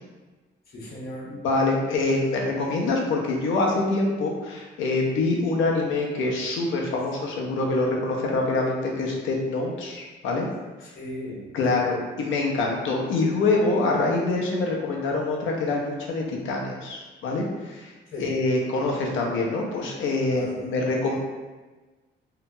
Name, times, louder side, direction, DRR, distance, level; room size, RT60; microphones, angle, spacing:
voice 1, 0.7-1.3 10.9-11.8 18.1-18.4 20.3-20.7, left 1 dB, 50° left, -5 dB, 1.1 m, -38 dB
voice 2, 1.3-10.5 11.5-21.2, left 2 dB, 80° left, -1 dB, 0.6 m, -25 dB
2.8 x 2.2 x 2.7 m, 1.3 s
cardioid pair, 90°, 20 cm